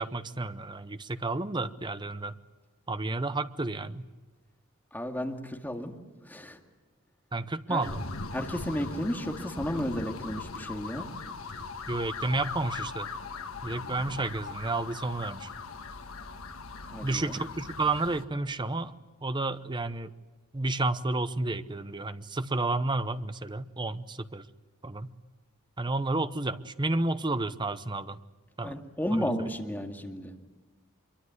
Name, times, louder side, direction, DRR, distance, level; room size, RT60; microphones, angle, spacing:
voice 1, 0.0-2.3 2.9-4.0 7.3-8.0 11.9-13.1 13.6-15.5 17.0-18.9 19.2-20.1 20.5-24.5 24.8-25.1 25.8-28.2 28.6-28.8 29.2-29.3, right 2 dB, 20° right, 12 dB, 0.8 m, -31 dB
voice 2, 4.9-6.0 6.3-6.6 7.7-7.8 8.3-11.1 16.9-17.4 28.6-30.3, equal, 10° left, 3 dB, 2.2 m, -33 dB
sound 1, 7.8-18.2, left 4 dB, 80° left, 1.6 m, -40 dB
25.0 x 23.5 x 9.6 m, 1.2 s
head